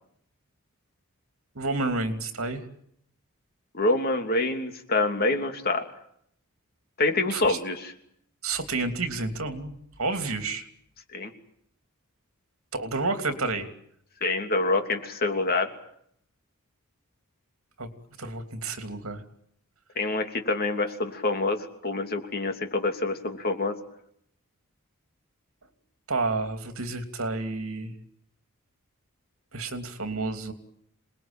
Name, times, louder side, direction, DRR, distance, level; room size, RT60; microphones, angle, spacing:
voice 1, 1.5-2.7 7.3-7.6 8.4-9.7 10.0-10.7 12.7-13.7 17.8-17.9 18.2-19.2 26.1-27.9 29.5-30.5, right 3 dB, 70° right, 7 dB, 3.0 m, -30 dB
voice 2, 3.7-5.8 7.0-7.9 11.1-11.3 14.2-15.7 20.0-23.7, left 2 dB, 45° left, 5 dB, 3.0 m, -26 dB
27.5 x 20.5 x 8.9 m, 0.70 s
head